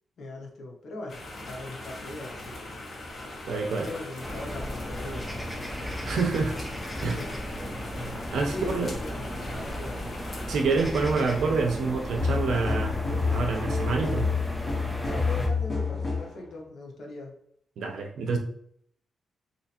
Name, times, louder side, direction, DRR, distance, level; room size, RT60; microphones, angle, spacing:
voice 1, 0.2-1.2 1.5-2.7 3.9-5.7 7.1-7.4 8.5-10.2 15.0-17.4, left 2 dB, 70° left, 0 dB, 0.8 m, -40 dB
sound 1, 1.1-10.6, left 2 dB, 45° left, 0.8 m, -41 dB
voice 2, 3.5-3.9 6.0-6.6 7.0-7.2 8.3-8.9 10.5-14.3 17.8-18.4, right 4 dB, 85° right, 3 dB, 0.6 m, -27 dB
sound 2, 4.2-15.5, equal, 10° left, 0.6 m, -35 dB
sound 3, 12.2-16.4, left 4 dB, 25° left, 1.2 m, -28 dB
3.3 x 2.7 x 2.8 m, 0.67 s
wide cardioid pair, 125°, 0 cm